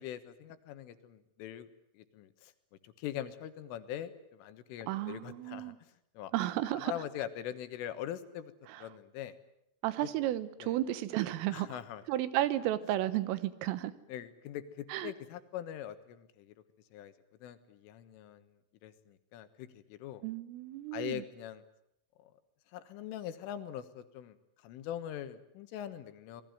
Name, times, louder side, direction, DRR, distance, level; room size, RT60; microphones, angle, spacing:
voice 1, 0.0-1.7 2.0-2.5 2.8-5.7 6.2-6.3 6.8-8.5 8.8-9.4 10.6-10.8 11.5-12.0 14.1-16.5 16.9-17.1 17.4-18.5 18.8-20.2 20.9-21.6 22.2-22.3 22.7-24.4 24.6-26.4, left 11 dB, 75° left, 3.9 m, -42 dB
voice 2, 4.9-5.8 6.3-6.9 8.7-8.8 9.8-11.8 12.1-13.9 14.9-15.1 20.2-21.2, right 14 dB, 80° right, 3.8 m, -33 dB
26.5 x 20.0 x 9.5 m
omnidirectional pair, 5.8 m